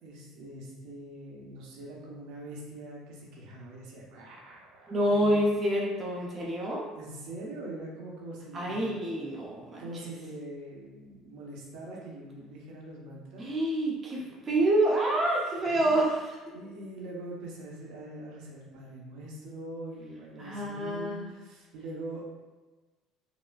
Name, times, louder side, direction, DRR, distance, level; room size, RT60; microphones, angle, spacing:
voice 1, 0.0-5.3 6.9-8.9 9.8-13.5 14.2-14.4 15.6-16.0 16.5-22.2, right 1 dB, 80° right, -3 dB, 1.0 m, -43 dB
voice 2, 4.9-6.8 8.5-9.8 13.4-16.4 20.4-21.3, right 1 dB, 30° right, -3 dB, 0.6 m, -27 dB
5.8 x 2.1 x 2.4 m, 1.2 s
cardioid pair, 120°, 0 cm